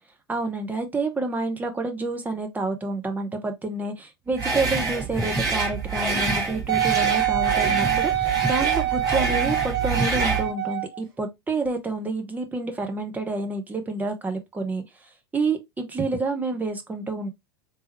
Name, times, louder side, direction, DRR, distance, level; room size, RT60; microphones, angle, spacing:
voice 1, 0.3-14.8 15.3-17.3, right 3 dB, 15° right, 0.8 m, -28 dB
sound 1, 4.4-10.5, right 4 dB, 30° right, 2.4 m, -26 dB
Wind instrument woodwind instrument, 6.7-11.0 11.7-11.8, right 13 dB, 60° right, 1.2 m, -25 dB
3.4 x 3.1 x 2.9 m
figure-of-eight pair, 85°, 13 cm